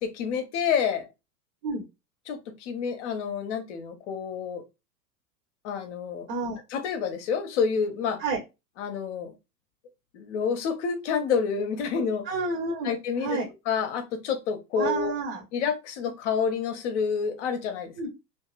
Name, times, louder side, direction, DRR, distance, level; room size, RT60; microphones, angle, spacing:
voice 1, 0.0-1.1 2.3-4.6 5.6-6.3 6.7-8.2 8.8-9.3 10.1-12.3 12.8-13.4 13.7-15.2 15.5-17.9, left 6 dB, 45° left, 0.7 m, -28 dB
voice 2, 6.3-6.6 8.2-8.4 12.3-12.9 13.2-13.5 14.8-15.4 18.0-18.1, right 4 dB, 35° right, 0.8 m, -29 dB
2.8 x 2.4 x 2.3 m
figure-of-eight pair, 90°, 50 cm